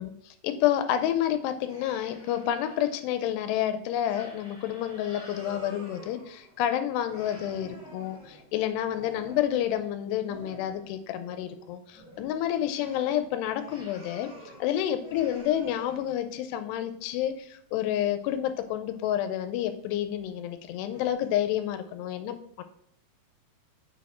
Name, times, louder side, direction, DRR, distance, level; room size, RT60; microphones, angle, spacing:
voice 1, 0.0-14.3 14.6-22.6, left 11 dB, 90° left, 9 dB, 2.7 m, -29 dB
sound 1, 1.5-3.0 3.5-3.6 4.1-6.7 7.0-10.9 11.2-11.6 11.9-14.7 15.0-16.3 16.8-16.9 18.2-18.4 18.9-19.1 19.6-19.7 20.3-20.4 20.9-21.1, equal, 15° right, 2.9 m, -48 dB
6.4 x 5.9 x 4.2 m, 0.65 s
omnidirectional pair, 4.7 m